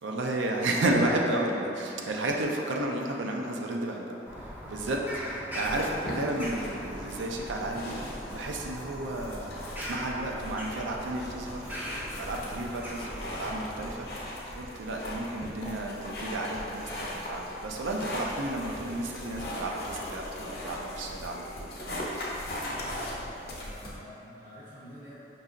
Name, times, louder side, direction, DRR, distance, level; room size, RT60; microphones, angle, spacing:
voice 1, 0.0-4.2 4.4-8.0 8.3-11.7 12.1-14.1 14.5-22.1, right 1 dB, 85° right, 0 dB, 0.4 m, -32 dB
Bird vocalization bird call bird song, 4.3-14.1, equal, 10° right, 0.3 m, -40 dB
Pig Breathing, 5.6-24.0, left 1 dB, 55° left, 0.6 m, -39 dB
voice 2, 22.7-25.2, equal, 55° right, -10 dB, 0.7 m, -48 dB
5.4 x 2.8 x 2.5 m, 2.8 s
head